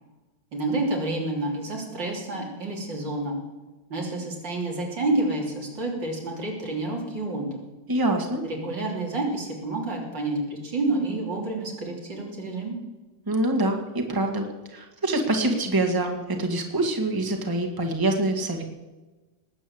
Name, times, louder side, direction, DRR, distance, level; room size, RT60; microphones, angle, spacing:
voice 1, 0.5-3.4 3.9-7.6 8.4-12.8, right 2 dB, 80° right, -1 dB, 4.1 m, -29 dB
voice 2, 7.9-8.4 13.3-14.5 14.7-18.6, right 2 dB, 10° right, 3 dB, 1.7 m, -25 dB
19.5 x 8.1 x 7.9 m, 1.2 s
omnidirectional pair, 1.9 m